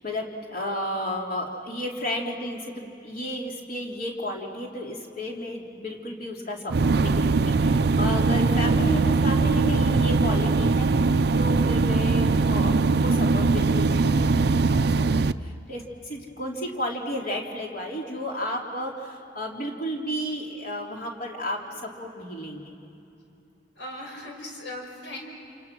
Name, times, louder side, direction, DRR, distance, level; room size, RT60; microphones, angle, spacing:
voice 1, 0.0-22.8, equal, 50° left, -1 dB, 3.5 m, -33 dB
sound 1, 6.7-15.3, right 3 dB, 60° right, 0.5 m, -21 dB
voice 2, 23.8-25.2, left 1 dB, 70° left, 1 dB, 5.2 m, -38 dB
29.0 x 28.5 x 6.2 m, 2.8 s
head